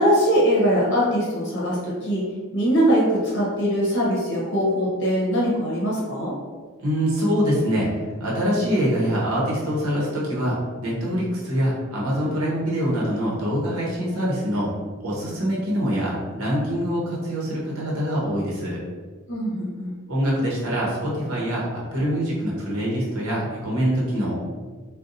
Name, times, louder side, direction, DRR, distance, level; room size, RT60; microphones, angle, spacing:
voice 1, 0.0-2.2 2.5-6.3 19.3-19.9, equal, 55° left, -6 dB, 0.8 m, -21 dB
voice 2, 6.8-7.9 8.2-10.6 10.8-14.7 15.0-18.8 20.1-24.3, equal, 85° right, -5 dB, 0.9 m, -24 dB
2.5 x 2.2 x 3.9 m, 1.5 s
head